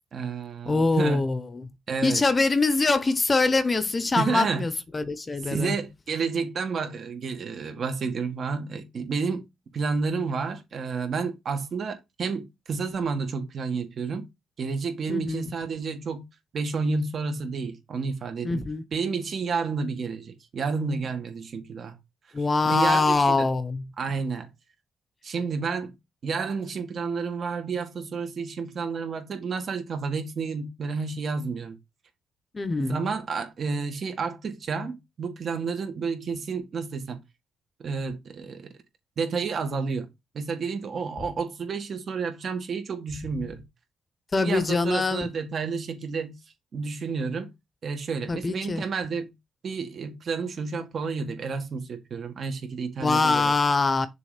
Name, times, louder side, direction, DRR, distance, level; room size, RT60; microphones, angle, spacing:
voice 1, 0.1-1.2 1.9-2.2 4.2-4.6 5.5-9.5 9.7-14.3 14.6-16.2 16.5-18.6 18.9-22.0 22.6-23.5 24.0-24.5 25.2-25.9 26.2-31.8 32.8-37.2 37.8-38.7 39.2-40.1 40.3-43.6 44.4-46.3 46.7-47.5 47.8-49.3 49.6-53.6, right 5 dB, 55° right, 1.8 m, -30 dB
voice 2, 0.7-1.7 2.0-5.8 15.1-15.5 18.4-18.8 22.3-23.9 32.5-33.0 44.3-45.3 48.3-48.8 53.0-54.1, left 3 dB, 30° left, 0.9 m, -24 dB
6.7 x 3.4 x 5.0 m
cardioid pair, 95°, 0 cm